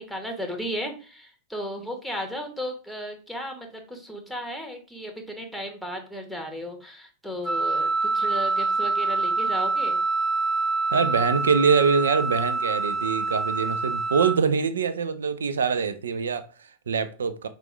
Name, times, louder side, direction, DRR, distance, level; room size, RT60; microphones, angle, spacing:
voice 1, 0.0-10.0, equal, 5° right, 1.2 m, -35 dB
Wind instrument woodwind instrument, 7.5-14.4, right 3 dB, 20° right, 0.9 m, -26 dB
voice 2, 10.9-17.5, right 5 dB, 65° right, 0.5 m, -24 dB
5.8 x 2.5 x 3.3 m
figure-of-eight pair, 90°, 0 cm